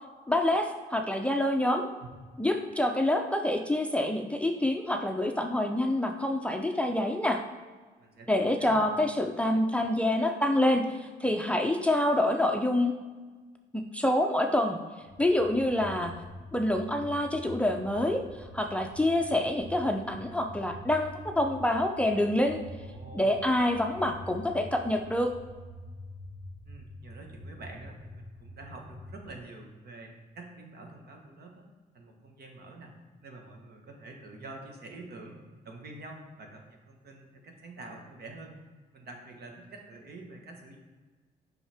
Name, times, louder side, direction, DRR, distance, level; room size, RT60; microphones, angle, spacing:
voice 1, 0.3-1.9 2.4-7.4 8.3-12.9 13.7-14.8 15.2-16.1 16.5-22.6 23.1-25.3, left 1 dB, 5° left, 4 dB, 0.5 m, -27 dB
voice 2, 8.0-8.8 22.8-23.4 26.7-31.7 31.9-32.9 33.2-38.6 38.9-40.8, right 2 dB, 60° right, 2 dB, 1.3 m, -47 dB
sound 1, 15.0-29.3, equal, 40° right, 1.6 m, -46 dB
6.0 x 5.7 x 3.4 m, 1.4 s
cardioid pair, 85°, 18 cm